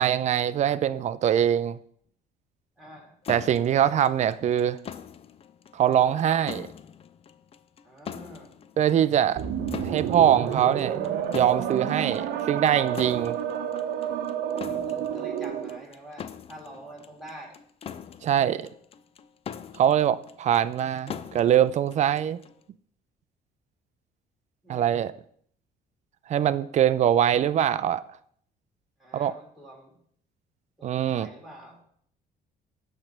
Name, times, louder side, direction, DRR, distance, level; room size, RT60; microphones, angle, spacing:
voice 1, 0.0-1.8 3.3-4.8 5.7-6.7 8.8-9.4 9.8-11.0 11.3-13.4 18.2-18.7 19.7-22.4 24.7-25.1 26.3-28.0 29.1-29.3 30.8-31.3, right 10 dB, 45° right, 0.4 m, -23 dB
voice 2, 2.8-3.1 7.8-8.5 14.5-17.6 24.6-24.9 29.0-29.9 30.8-31.8, right 1 dB, ahead, 2.9 m, -46 dB
sound 1, 3.2-22.6, left 8 dB, 35° left, 0.5 m, -43 dB
sound 2, 9.4-15.8, right 9 dB, 80° right, 0.8 m, -30 dB
8.8 x 3.3 x 5.9 m
cardioid pair, 110°, 17 cm